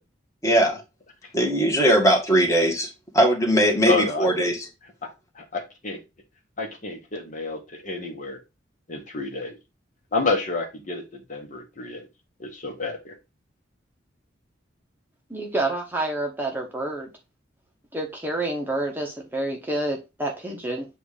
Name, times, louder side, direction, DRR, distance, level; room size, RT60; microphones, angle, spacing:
voice 1, 0.4-0.8 1.3-2.9 3.1-4.7, right 1 dB, 15° left, 1.7 m, -20 dB
voice 2, 3.8-4.5 5.3-6.0 6.6-8.4 8.9-9.6 10.1-12.1 12.4-13.1, left 3 dB, 45° left, 1.3 m, -29 dB
voice 3, 15.3-17.1 17.9-20.9, right 2 dB, 10° right, 0.9 m, -28 dB
7.7 x 2.6 x 4.9 m
head